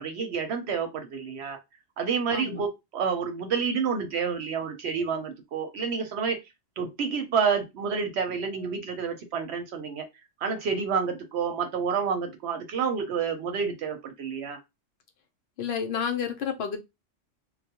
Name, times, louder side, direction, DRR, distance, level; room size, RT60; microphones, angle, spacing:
voice 1, 0.0-1.6 2.0-6.4 6.8-10.0 10.4-14.6, right 6 dB, 65° right, 0.8 m, -29 dB
voice 2, 2.3-2.6 15.6-16.8, left 7 dB, 60° left, 0.8 m, -30 dB
2.3 x 2.1 x 2.7 m
omnidirectional pair, 1.3 m